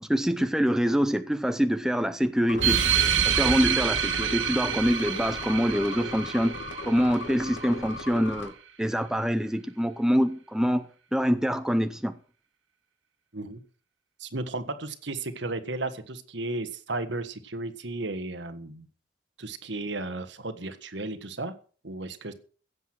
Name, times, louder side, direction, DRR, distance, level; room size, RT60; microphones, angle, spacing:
voice 1, 0.0-2.8 3.2-6.6 6.8-8.5 8.8-12.2, equal, 5° right, 0.6 m, -25 dB
sound 1, 2.5-8.5, left 2 dB, 80° left, 2.4 m, -38 dB
sound 2, 2.6-7.6, right 8 dB, 90° right, 1.8 m, -27 dB
voice 2, 14.2-18.9 19.4-21.5 21.8-22.3, right 2 dB, 70° right, 1.6 m, -34 dB
16.0 x 8.2 x 6.2 m
head